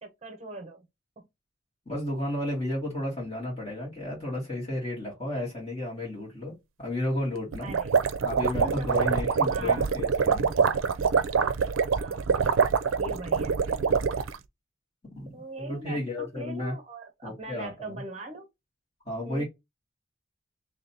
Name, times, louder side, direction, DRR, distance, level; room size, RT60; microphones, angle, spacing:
voice 1, 0.0-0.9 1.2-1.3 7.6-7.9 8.6-9.0 9.5-9.9 11.8-12.4 13.0-14.0 15.3-18.5 19.2-19.4, right 2 dB, 30° right, 0.8 m, -41 dB
voice 2, 1.9-7.7 8.2-10.5 15.0-16.7 17.2-18.0 19.0-19.4, left 1 dB, 30° left, 2.3 m, -33 dB
sound 1, 7.5-14.4, right 6 dB, 90° right, 0.4 m, -25 dB
3.7 x 3.2 x 2.8 m
head